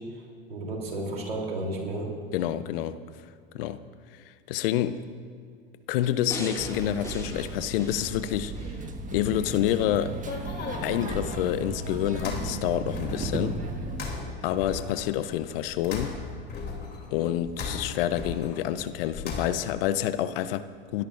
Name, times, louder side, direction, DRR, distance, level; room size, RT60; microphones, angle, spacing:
voice 1, 0.1-2.2, right 2 dB, 90° right, 0 dB, 3.4 m, -33 dB
voice 2, 2.3-3.0 3.5-3.8 4.5-5.1 5.9-8.5 9.1-10.2 10.8-13.6 14.4-16.2 17.1-21.1, left 11 dB, 70° left, 13 dB, 0.8 m, -28 dB
sound 1, 6.3-8.8 9.3-9.4, equal, 10° left, 3.0 m, -39 dB
sound 2, 6.6-14.1, right 3 dB, 25° right, 1.5 m, -35 dB
sound 3, 9.7-19.9, left 4 dB, 35° left, 3.0 m, -38 dB
28.0 x 13.0 x 2.6 m, 2.2 s
hypercardioid pair, 85°, 29 cm